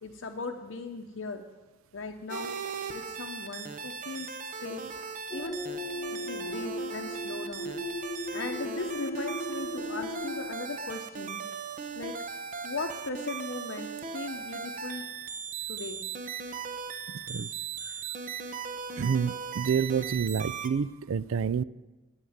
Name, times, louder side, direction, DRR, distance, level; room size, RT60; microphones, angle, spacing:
voice 1, 0.0-1.5 1.9-2.5 2.9-4.3 4.6-4.8 5.3-5.6 6.1-7.7 8.3-11.4 11.9-12.2 12.6-15.0 15.7-16.0, left 3 dB, 65° left, 4 dB, 0.7 m, -38 dB
sound 1, 2.3-20.7, right 6 dB, 40° right, 0.7 m, -38 dB
sound 2, 5.3-10.5, left 1 dB, 15° left, 1.3 m, -36 dB
voice 2, 17.1-17.5 19.0-21.6, right 7 dB, 75° right, 19 dB, 0.4 m, -28 dB
9.1 x 8.1 x 9.4 m, 1.2 s
head